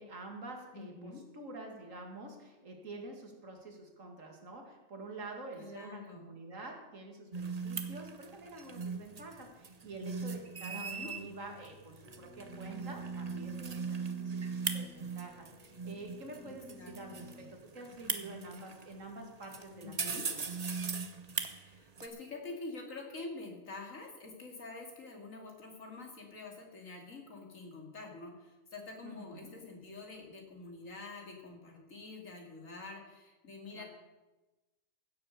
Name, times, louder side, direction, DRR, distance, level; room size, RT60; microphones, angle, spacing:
voice 1, 0.0-20.5 29.0-29.6 33.7-33.8, right 2 dB, 80° right, 2 dB, 2.6 m, -47 dB
voice 2, 0.7-1.2 5.6-6.3 10.7-11.1 16.4-16.5 16.8-17.2 19.8-20.3 21.5-33.8, left 3 dB, 85° left, 1 dB, 2.9 m, -47 dB
sound 1, 7.3-22.1, right 5 dB, 35° right, 0.8 m, -40 dB
sound 2, 12.0-17.5, left 3 dB, 10° left, 1.1 m, -53 dB
16.0 x 7.8 x 6.7 m, 1.1 s
omnidirectional pair, 1.3 m